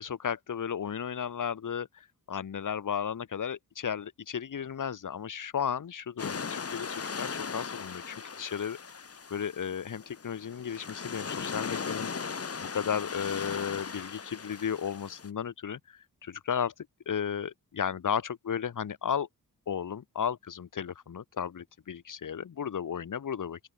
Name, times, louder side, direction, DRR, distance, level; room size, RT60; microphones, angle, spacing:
voice 1, 0.0-1.9 2.3-8.8 9.3-12.1 12.7-15.8 16.2-16.7 17.1-19.3 19.7-23.6, left 8 dB, 60° left, 2.3 m, -34 dB
sound 1, 6.2-15.3, left 5 dB, 40° left, 2.5 m, -38 dB
open air
wide cardioid pair, 110°, 35 cm